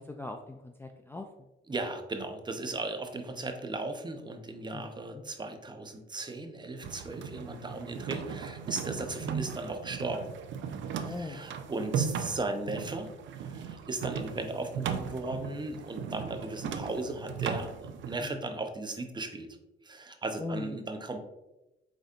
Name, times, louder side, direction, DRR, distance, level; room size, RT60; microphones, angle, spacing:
voice 1, 0.0-1.5 4.7-4.8 5.1-5.2 11.0-11.5 18.2-18.5 20.4-20.8, left 3 dB, 10° left, 4 dB, 0.3 m, -40 dB
voice 2, 1.7-10.3 11.0-13.1 13.3-19.6 19.8-21.3, right 2 dB, 20° right, 6 dB, 0.7 m, -37 dB
sound 1, 6.8-18.2, right 7 dB, 70° right, 0.5 m, -37 dB
5.2 x 3.9 x 2.4 m, 0.96 s
cardioid pair, 90°, 20 cm